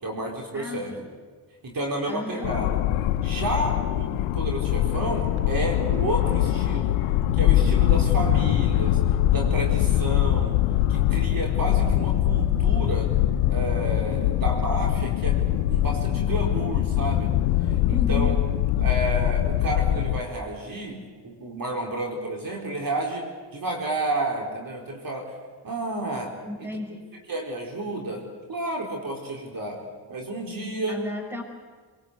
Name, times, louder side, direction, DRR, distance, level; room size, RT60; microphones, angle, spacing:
voice 1, 0.0-0.9 1.6-2.8 3.2-6.9 7.3-9.0 9.3-10.6 10.9-13.1 13.5-17.3 17.7-18.3 18.8-23.2 23.5-25.3 25.6-26.3 26.6-26.7 27.3-28.2 28.5-29.8 30.1-31.0, right 2 dB, 45° right, 0 dB, 4.5 m, -31 dB
voice 2, 0.5-1.1 2.1-2.5 17.9-18.4 26.5-27.2 30.9-31.4, left 3 dB, 5° right, 4 dB, 5.8 m, -33 dB
sound 1, 2.4-20.2, left 12 dB, 85° left, 0.9 m, -23 dB
22.0 x 22.0 x 8.3 m, 1.5 s
supercardioid pair, 60°, 48 cm